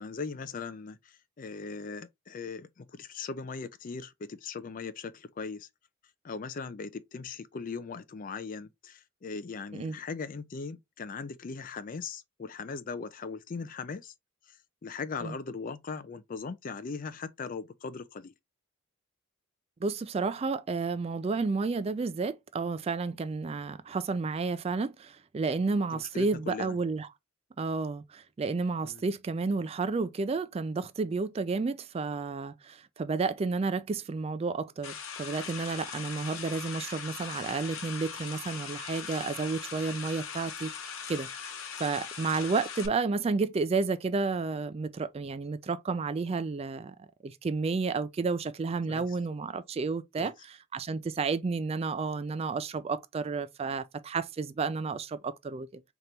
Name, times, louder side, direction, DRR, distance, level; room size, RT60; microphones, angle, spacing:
voice 1, 0.0-5.7 6.2-14.1 14.5-14.6 14.8-18.3 25.9-26.8 28.8-29.0 48.9-49.0 50.2-50.3, left 4 dB, 40° left, 0.4 m, -39 dB
voice 2, 19.8-27.1 27.6-41.3 41.8-47.0 47.2-55.8, right 4 dB, 30° right, 0.3 m, -31 dB
sound 1, 34.8-42.9, left 7 dB, 85° left, 0.9 m, -40 dB
3.9 x 3.0 x 3.2 m
head